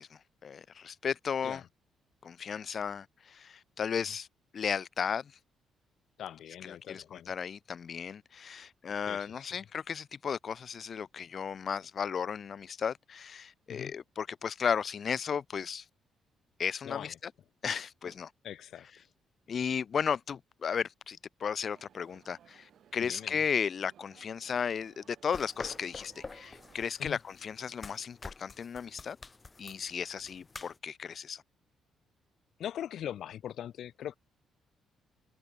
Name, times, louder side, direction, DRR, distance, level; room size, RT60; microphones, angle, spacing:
voice 1, 0.0-1.6 2.2-4.3 4.5-5.3 6.6-15.8 16.6-17.3 17.6-18.3 19.5-29.2 29.6-31.4, left 7 dB, 50° left, 0.9 m, -35 dB
voice 2, 6.2-7.3 9.1-9.4 13.7-13.9 16.8-17.1 18.4-18.9 23.0-23.4 27.0-27.2 32.6-34.1, left 10 dB, 70° left, 1.3 m, -41 dB
sound 1, 21.7-26.9, right 9 dB, 65° right, 5.2 m, -61 dB
sound 2, 25.3-30.8, left 3 dB, 25° left, 2.8 m, -48 dB
cardioid pair, 90°, 0 cm